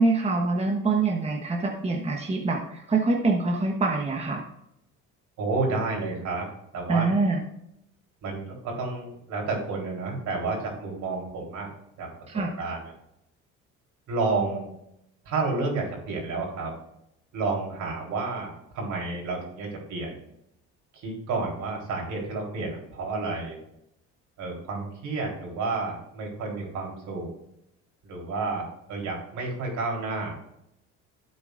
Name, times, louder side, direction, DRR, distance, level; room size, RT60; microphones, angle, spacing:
voice 1, 0.0-4.4 6.9-7.4 12.3-12.5, right 3 dB, 20° right, 1 dB, 1.3 m, -25 dB
voice 2, 5.4-6.5 6.7-7.1 8.2-11.7 12.0-12.1 12.3-12.9 14.1-14.7 15.3-16.7 17.3-20.2 20.9-23.6 24.4-27.3 28.0-30.4, right 3 dB, 70° right, -1 dB, 3.8 m, -30 dB
12.5 x 7.9 x 2.6 m, 0.80 s
cardioid pair, 100°, 30 cm